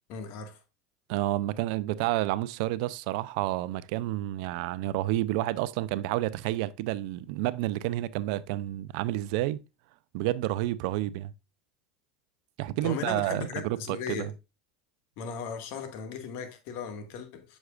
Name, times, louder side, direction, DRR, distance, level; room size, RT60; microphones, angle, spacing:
voice 1, 0.1-0.6 12.8-14.3 15.2-17.6, left 6 dB, 60° left, 1.7 m, -37 dB
voice 2, 1.1-9.6 10.1-11.3 12.6-14.3, right 15 dB, 70° right, 0.5 m, -30 dB
8.0 x 6.3 x 2.4 m
supercardioid pair, 105°, 4 cm